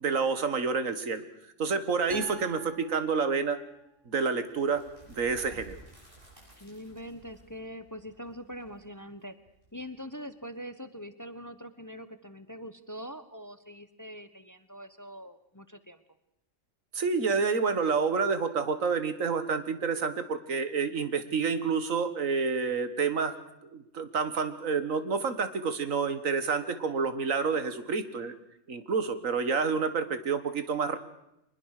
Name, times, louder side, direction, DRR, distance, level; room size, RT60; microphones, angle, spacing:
voice 1, 0.0-1.2 1.6-3.6 4.1-4.8 5.1-5.8 16.9-23.3 23.6-28.3 28.7-31.0, right 5 dB, 85° right, 11 dB, 1.9 m, -29 dB
sound 1, 2.1-3.9, right 5 dB, 60° right, 2.9 m, -46 dB
sound 2, 4.5-10.3, right 3 dB, 45° right, 8.1 m, -54 dB
voice 2, 6.6-9.4 9.7-16.0, equal, 15° left, 11 dB, 0.8 m, -43 dB
23.5 x 21.0 x 6.6 m, 0.85 s
omnidirectional pair, 1.3 m